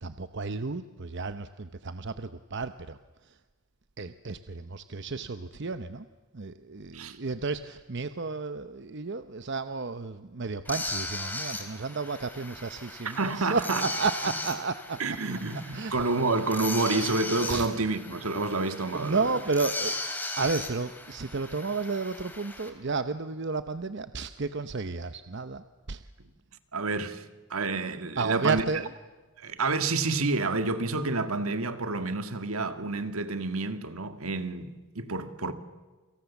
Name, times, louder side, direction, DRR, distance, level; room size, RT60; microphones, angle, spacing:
voice 1, 0.0-3.0 3.3-3.4 4.0-6.1 6.3-15.0 15.7-15.9 17.5-17.7 18.9-20.0 20.4-25.6 25.9-26.0 28.2-28.9, right 4 dB, 55° right, 0.8 m, -32 dB
sound 1, 10.6-22.7, left 2 dB, 10° left, 3.5 m, -37 dB
voice 2, 13.0-13.8 15.0-19.3 26.7-27.2 27.5-28.7 29.4-35.5, right 3 dB, 75° right, 1.9 m, -29 dB
29.0 x 26.0 x 7.2 m
head